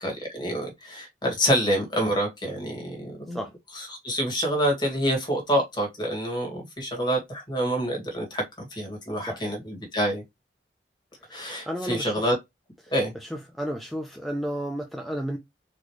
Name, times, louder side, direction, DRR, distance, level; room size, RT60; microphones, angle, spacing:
voice 1, 0.0-3.4 4.0-10.2 11.3-12.3 12.9-13.1, equal, 25° left, 1.9 m, -27 dB
voice 2, 9.2-9.6 11.2-12.3 12.8-15.4, equal, ahead, 0.5 m, -33 dB
4.2 x 3.1 x 3.2 m
head